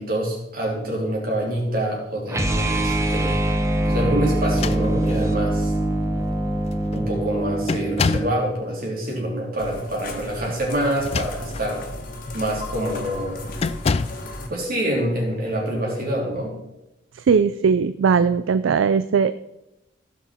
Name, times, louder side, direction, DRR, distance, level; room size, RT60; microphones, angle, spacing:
voice 1, 0.0-3.4 3.8-5.7 6.9-11.8 12.3-13.4 14.5-16.5, right 1 dB, 50° right, -2 dB, 3.4 m, -26 dB
sound 1, 2.3-8.4, right 1 dB, 15° right, 0.9 m, -23 dB
sound 2, 4.4-5.3 6.2-6.3 6.7-7.0 7.7-8.4 10.9-11.7 12.3-12.5 13.6-14.3, left 4 dB, 30° left, 0.3 m, -27 dB
sound 3, 9.6-14.5, left 1 dB, 45° left, 1.6 m, -35 dB
voice 2, 17.1-19.3, right 6 dB, 80° right, 13 dB, 0.4 m, -19 dB
15.5 x 6.1 x 4.4 m, 0.92 s
head